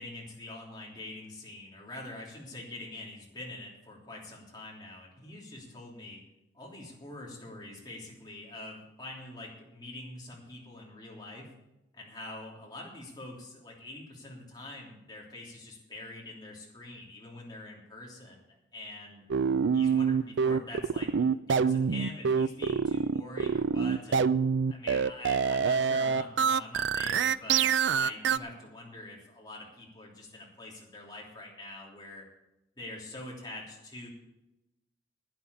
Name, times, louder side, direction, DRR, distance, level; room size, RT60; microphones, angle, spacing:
voice 1, 0.0-6.2 6.5-11.6 11.9-18.4 18.7-19.2 19.7-24.3 24.7-32.2 32.8-34.1, left 2 dB, 25° left, -3 dB, 3.2 m, -45 dB
sound 1, 19.3-28.4, right 6 dB, 85° right, 0.4 m, -26 dB
12.0 x 9.4 x 7.1 m, 0.93 s
head